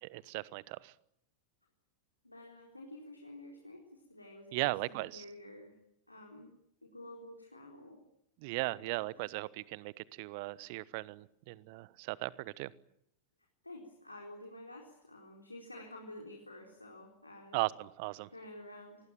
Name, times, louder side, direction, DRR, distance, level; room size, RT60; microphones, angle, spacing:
voice 1, 0.0-0.9 4.5-5.2 8.4-12.7 17.5-18.3, right 22 dB, 45° right, 20 dB, 1.1 m, -37 dB
voice 2, 2.2-4.6 4.8-5.7 6.1-6.5 6.8-8.0 8.7-9.1 13.6-17.6 18.3-19.1, left 1 dB, 85° left, 0 dB, 4.2 m, -50 dB
27.5 x 20.5 x 9.3 m, 0.76 s
figure-of-eight pair, 90°, 0 cm